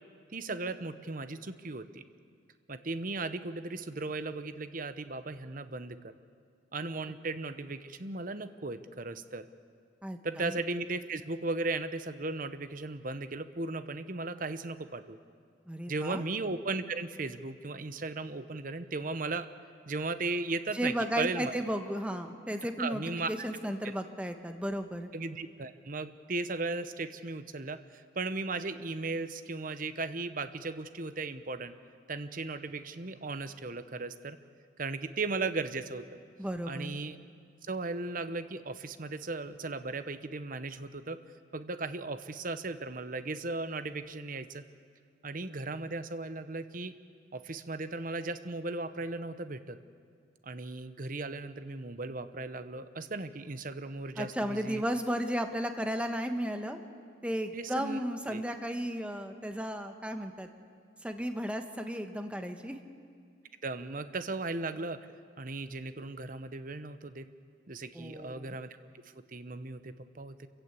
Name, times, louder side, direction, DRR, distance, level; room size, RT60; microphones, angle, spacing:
voice 1, 0.3-2.0 2.7-6.1 6.7-9.5 10.2-15.2 15.9-19.5 19.9-21.5 22.8-23.3 23.8-23.9 25.1-31.7 32.1-34.4 34.8-36.2 36.6-37.2 37.7-41.2 41.5-44.6 45.2-46.9 47.3-49.8 50.4-54.8 57.5-58.0 58.3-58.4 63.6-65.0 65.4-67.3 67.7-68.7 69.3-70.5, right 3 dB, 45° right, 11 dB, 1.0 m, -36 dB
voice 2, 10.0-10.6 15.7-16.2 20.7-23.0 23.3-25.1 36.4-37.0 54.2-56.8 57.2-60.5 61.0-62.8 67.9-68.5, equal, 5° right, 6 dB, 1.2 m, -34 dB
27.5 x 15.5 x 8.3 m, 2.2 s
head